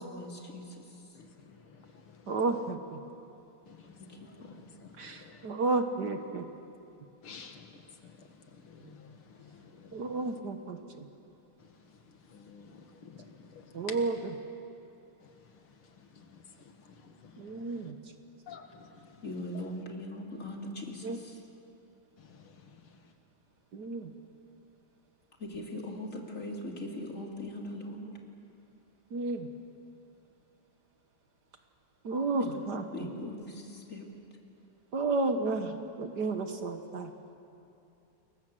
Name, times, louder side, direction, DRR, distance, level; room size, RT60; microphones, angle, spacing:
voice 1, 0.2-0.6 4.4-4.5 8.8-8.9 19.2-21.1 25.4-28.1 32.9-34.0, left 1 dB, 35° left, 3.4 m, -40 dB
voice 2, 1.1-2.3 3.7-5.5 7.2-10.2 11.6-14.0 15.2-17.9 18.5-19.7 22.2-23.0, left 5 dB, 80° left, 2.5 m, -52 dB
voice 3, 2.3-3.0 5.0-6.5 9.9-11.1 13.7-14.3 17.4-18.0 21.0-21.2 23.7-24.1 29.1-29.5 32.0-33.1 34.9-37.1, right 3 dB, 55° right, 1.7 m, -32 dB
29.5 x 22.0 x 7.8 m
omnidirectional pair, 2.3 m